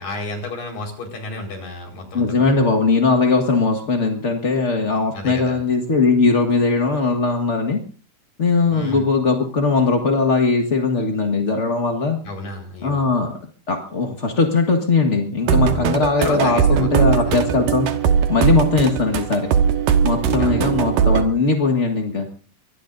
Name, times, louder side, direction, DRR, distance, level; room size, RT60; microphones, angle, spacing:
voice 1, 0.0-2.6 5.1-5.6 8.7-9.1 12.2-13.0 16.2-17.5 20.4-20.7, left 2 dB, 80° left, 2 dB, 6.4 m, -32 dB
voice 2, 2.1-7.8 8.4-12.2 12.8-13.3 13.7-17.9 18.3-19.5 20.0-22.3, left 4 dB, 45° left, 3 dB, 0.8 m, -19 dB
sound 1, 15.5-21.2, right 7 dB, 80° right, 2.9 m, -19 dB
24.0 x 19.0 x 2.6 m, 0.41 s
omnidirectional pair, 3.9 m